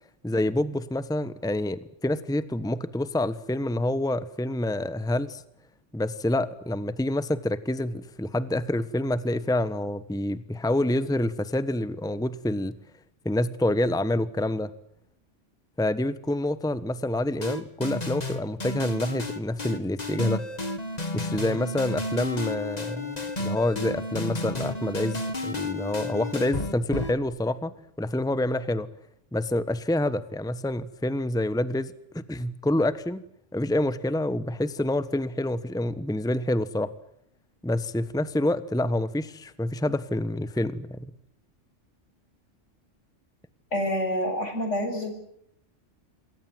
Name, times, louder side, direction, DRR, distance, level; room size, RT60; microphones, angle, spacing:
voice 1, 0.2-5.4 5.9-12.7 13.2-14.7 15.8-20.4 21.1-27.7 28.0-28.9 29.3-33.2 33.5-36.9 37.6-41.1, left 1 dB, 5° left, 14 dB, 1.2 m, -27 dB
sound 1, 17.4-27.3, left 2 dB, 35° left, 2.3 m, -32 dB
voice 2, 43.7-45.1, equal, 75° left, 6 dB, 7.3 m, -27 dB
28.0 x 22.0 x 7.8 m, 0.74 s
omnidirectional pair, 1.3 m